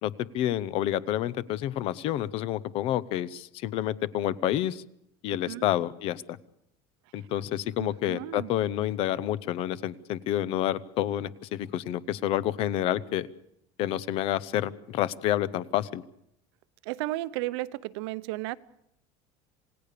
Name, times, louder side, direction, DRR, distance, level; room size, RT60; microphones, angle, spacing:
voice 1, 0.0-4.8 5.2-6.4 7.1-13.3 13.8-16.0, left 12 dB, 45° left, 18 dB, 0.8 m, -29 dB
voice 2, 7.8-8.5 16.8-18.6, right 18 dB, 90° right, 16 dB, 0.9 m, -34 dB
27.5 x 18.0 x 6.8 m, 0.76 s
cardioid pair, 180°, 14 cm